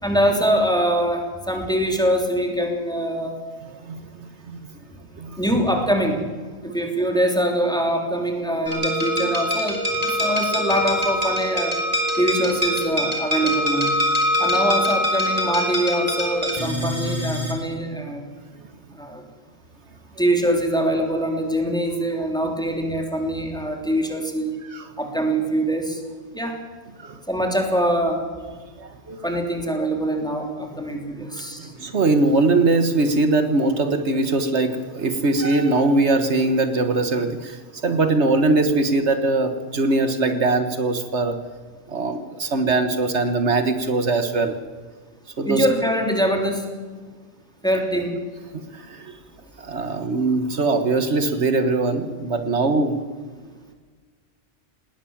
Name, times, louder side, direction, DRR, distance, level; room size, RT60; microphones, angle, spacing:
voice 1, 0.0-3.3 5.4-6.2 6.6-11.8 12.2-13.9 14.4-18.2 18.9-19.2 20.2-24.6 25.0-26.0 26.3-26.6 27.3-28.2 29.2-31.7 45.4-46.7 47.6-48.2, right 1 dB, 5° left, 2 dB, 3.4 m, -23 dB
voice 2, 3.8-4.6 5.2-5.4 6.6-6.7 24.7-24.9 27.0-27.2 28.8-29.2 31.6-41.4 41.9-44.5 45.4-45.7 48.5-49.2 49.6-52.9, right 3 dB, 70° right, 8 dB, 1.7 m, -21 dB
sound 1, 8.7-17.5, left 1 dB, 30° right, 3.9 m, -24 dB
19.5 x 19.0 x 7.3 m, 1.5 s
omnidirectional pair, 1.2 m